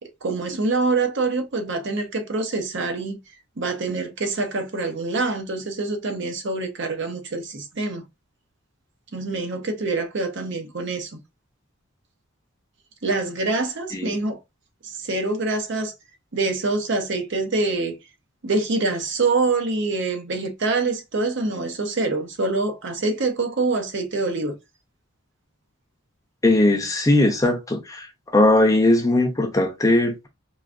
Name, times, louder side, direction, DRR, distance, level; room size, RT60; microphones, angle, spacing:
voice 1, 0.0-3.2 3.6-8.0 9.1-11.2 13.0-14.4 14.8-15.9 16.3-18.0 18.4-24.6, right 3 dB, 60° right, 0.7 m, -25 dB
voice 2, 26.4-28.1 28.3-30.3, left 1 dB, 15° left, 0.6 m, -19 dB
4.6 x 2.4 x 2.5 m
head